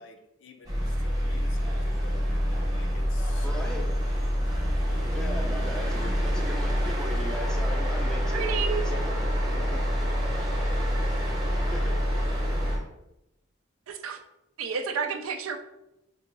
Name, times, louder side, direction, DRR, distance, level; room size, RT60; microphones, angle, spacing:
voice 1, 0.0-4.1, left 3 dB, 60° left, 0.5 m, -49 dB
sound 1, 0.7-12.8, equal, 20° right, 0.8 m, -27 dB
voice 2, 3.4-3.9 5.1-8.5 8.8-9.2 9.6-9.8 11.7-12.0, equal, 5° left, 0.4 m, -38 dB
voice 3, 8.3-8.8 13.9-14.2 14.6-15.6, right 6 dB, 85° right, 0.4 m, -30 dB
2.7 x 2.7 x 3.8 m
head